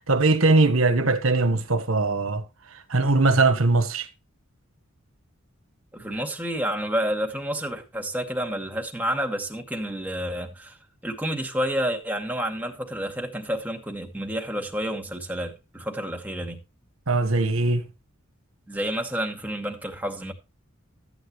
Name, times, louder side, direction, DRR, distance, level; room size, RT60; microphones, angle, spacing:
voice 1, 0.1-2.4 2.9-4.1 17.1-17.8, right 3 dB, 75° right, 1.4 m, -20 dB
voice 2, 5.9-10.8 11.0-16.6 18.7-20.3, equal, 10° right, 2.2 m, -29 dB
14.0 x 9.2 x 3.1 m
head